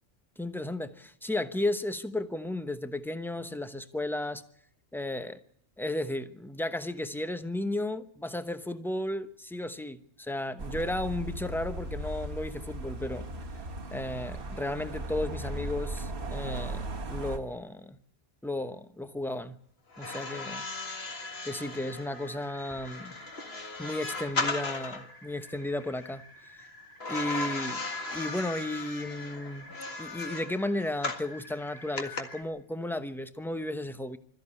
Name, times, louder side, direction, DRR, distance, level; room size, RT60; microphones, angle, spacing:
voice 1, 0.4-4.4 4.9-5.4 5.8-13.2 13.9-18.0 18.4-19.6 20.0-20.7 21.4-23.2 23.8-26.7 27.1-27.8 28.1-29.7 30.0-34.2, left 1 dB, ahead, 10 dB, 0.8 m, -34 dB
sound 1, 10.6-17.4, right 2 dB, 60° right, 1.8 m, -37 dB
sound 2, 19.9-25.1 27.0-31.3 32.0-32.2, left 3 dB, 60° left, 2.2 m, -36 dB
sound 3, 20.0-32.4, left 1 dB, 85° left, 4.0 m, -51 dB
21.5 x 14.0 x 9.8 m, 0.70 s
omnidirectional pair, 1.2 m